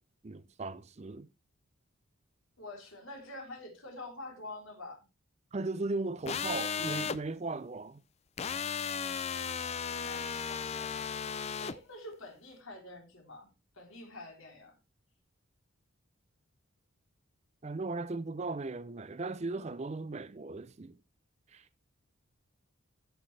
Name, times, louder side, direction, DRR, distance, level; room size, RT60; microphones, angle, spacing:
voice 1, 0.2-1.3 5.5-8.0 17.6-21.0 21.5-21.7, right 3 dB, 30° right, 0.4 m, -37 dB
voice 2, 2.6-5.0 10.0-11.1 11.6-13.5 13.7-14.8, left 2 dB, 70° left, 3.4 m, -47 dB
sound 1, 6.3-7.2 8.4-11.7, left 6 dB, 30° left, 0.4 m, -35 dB
14.0 x 6.1 x 3.2 m
head